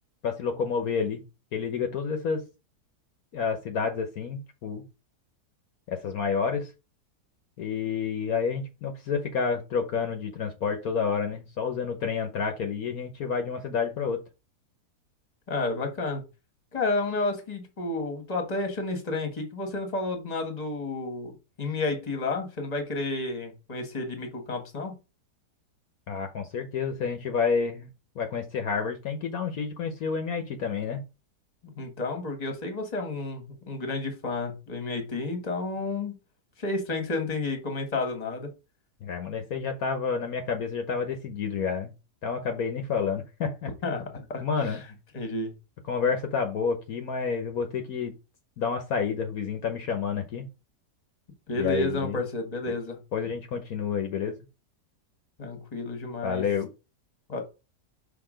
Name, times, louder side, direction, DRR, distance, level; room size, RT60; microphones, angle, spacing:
voice 1, 0.2-1.2 1.5-2.4 3.3-4.8 5.9-6.7 7.6-14.2 26.1-27.9 28.1-31.0 39.0-41.9 42.2-43.7 44.4-44.8 45.9-48.1 48.6-50.5 51.5-52.2 52.7-52.8 53.1-54.4 56.2-56.7, left 6 dB, 65° left, 6 dB, 1.3 m, -29 dB
voice 2, 15.5-16.2 16.7-21.3 21.6-24.9 31.8-36.1 36.6-38.5 43.8-44.8 45.1-45.5 51.5-53.0 55.4-56.4 57.3-57.4, left 2 dB, 25° left, 5 dB, 1.4 m, -31 dB
5.9 x 3.4 x 5.0 m, 0.28 s
omnidirectional pair, 1.7 m